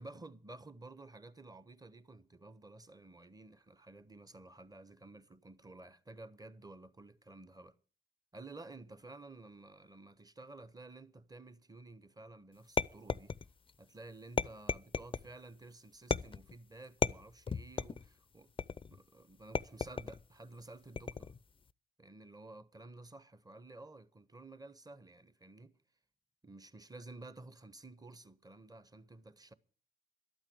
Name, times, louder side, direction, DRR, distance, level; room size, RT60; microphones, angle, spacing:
voice 1, 0.0-7.8 8.3-13.4 13.8-18.5 18.9-21.3 22.0-25.7 26.4-29.5, right 2 dB, 20° right, 1.0 m, -53 dB
sound 1, 12.8-13.7 14.4-15.3 16.1-16.5 17.0-18.1 18.6-19.0 19.5-20.2 21.0-21.4, left 5 dB, 25° left, 0.5 m, -35 dB
12.0 x 8.9 x 8.1 m
hypercardioid pair, 40°, 20 cm